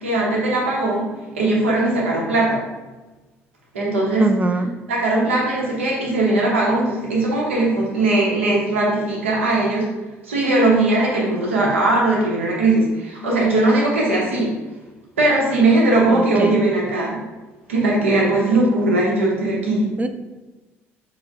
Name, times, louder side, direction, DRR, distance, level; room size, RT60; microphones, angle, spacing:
voice 1, 0.0-2.6 3.7-4.4 4.9-9.9 10.2-14.5 15.2-17.2 17.7-20.0, right 2 dB, 90° right, -3 dB, 0.8 m, -19 dB
voice 2, 4.2-4.8 16.1-16.6 20.0-20.1, right 3 dB, 20° right, 8 dB, 0.3 m, -23 dB
4.6 x 2.1 x 3.5 m, 1.2 s
hypercardioid pair, 55°, 7 cm